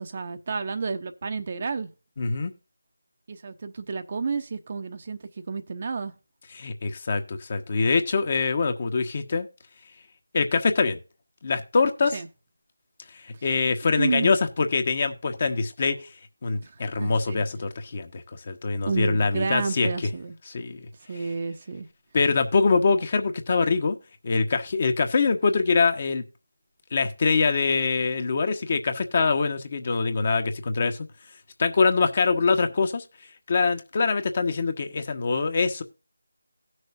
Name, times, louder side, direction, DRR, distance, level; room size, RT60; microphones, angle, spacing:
voice 1, 0.0-1.9 3.3-5.2 5.5-6.1 12.1-12.3 14.0-14.3 16.6-17.4 18.9-20.4 21.1-21.9, right 4 dB, 40° right, 0.9 m, -30 dB
voice 2, 2.2-2.5 6.5-9.5 10.3-11.0 11.4-12.2 13.4-16.1 16.4-19.9 20.5-20.9 22.1-24.0 24.2-26.2 26.9-31.0 31.6-33.0 33.5-35.8, left 4 dB, 40° left, 1.3 m, -24 dB
18.5 x 6.4 x 2.6 m
figure-of-eight pair, 165°, 0 cm